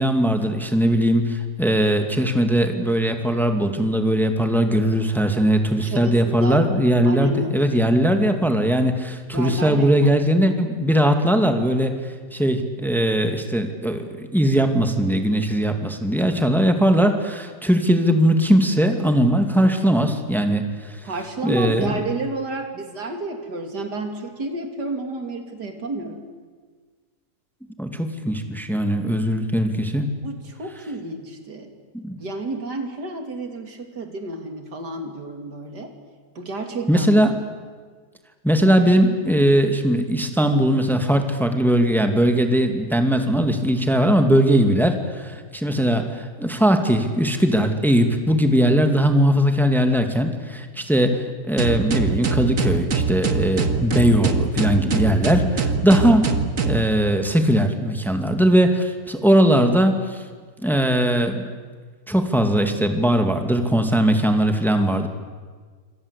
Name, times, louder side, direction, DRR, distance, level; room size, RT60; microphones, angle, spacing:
voice 1, 0.0-11.9 12.3-21.0 21.4-21.9 27.8-30.1 31.9-32.1 36.9-37.3 38.4-56.3 56.6-60.2 60.6-61.4 62.1-65.1, equal, ahead, 5 dB, 2.2 m, -19 dB
voice 2, 5.8-6.6 7.0-7.7 9.3-10.1 21.0-26.2 30.2-31.7 32.2-35.9 36.3-37.1, right 2 dB, 90° right, 5 dB, 3.4 m, -31 dB
sound 1, 51.6-56.9, right 4 dB, 55° right, 2.0 m, -23 dB
27.0 x 26.0 x 8.2 m, 1.5 s
omnidirectional pair, 1.7 m